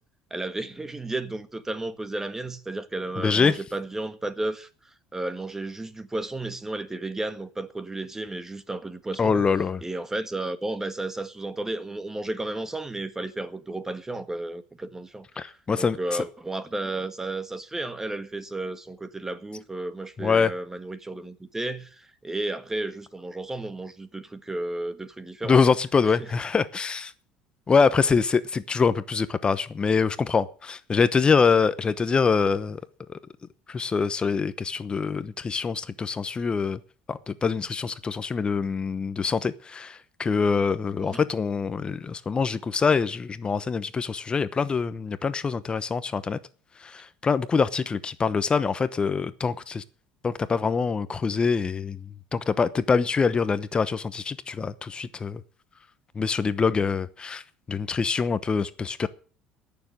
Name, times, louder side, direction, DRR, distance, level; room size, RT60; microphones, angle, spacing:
voice 1, 0.3-9.5 9.8-25.6 26.0-26.3 41.0-41.3, right 2 dB, 15° right, 1.6 m, -33 dB
voice 2, 3.2-3.5 9.2-9.8 15.4-16.0 20.2-20.5 25.4-27.1 27.7-32.8 33.1-33.2 33.7-36.8 37.1-46.4 46.8-49.8 50.2-52.0 52.3-55.4 56.1-57.4 57.7-59.1, left 5 dB, 30° left, 0.9 m, -24 dB
16.0 x 7.0 x 8.9 m
supercardioid pair, 85°, 3 cm